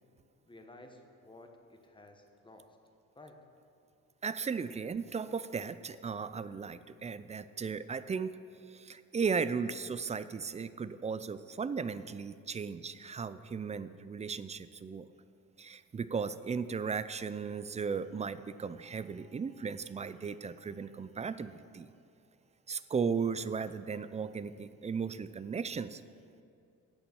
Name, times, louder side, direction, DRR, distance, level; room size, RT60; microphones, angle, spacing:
voice 1, 0.5-2.8 3.2-3.4, left 2 dB, 15° left, 4 dB, 1.2 m, -54 dB
voice 2, 4.2-8.4 8.7-15.1 15.6-21.9 22.7-26.0, right 5 dB, 25° right, 14 dB, 0.4 m, -36 dB
8.1 x 6.9 x 8.4 m, 2.5 s
cardioid pair, 90°, 30 cm